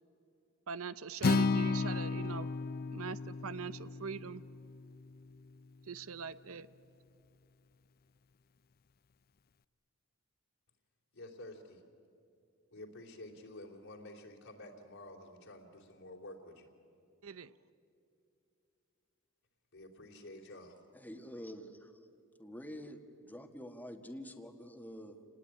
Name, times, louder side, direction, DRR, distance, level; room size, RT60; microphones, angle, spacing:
voice 1, 0.7-2.7 2.9-4.4 5.8-6.7 17.2-17.6, right 6 dB, 85° right, 15 dB, 0.7 m, -42 dB
Acoustic guitar, 1.2-5.4, left 3 dB, 45° left, 0.6 m, -34 dB
voice 2, 11.1-11.8 12.7-16.7 19.7-20.7, left 1 dB, 65° left, -1 dB, 3.2 m, -50 dB
voice 3, 20.9-22.1 22.4-25.3, equal, 10° left, 7 dB, 1.6 m, -47 dB
28.0 x 19.5 x 10.0 m, 2.7 s
head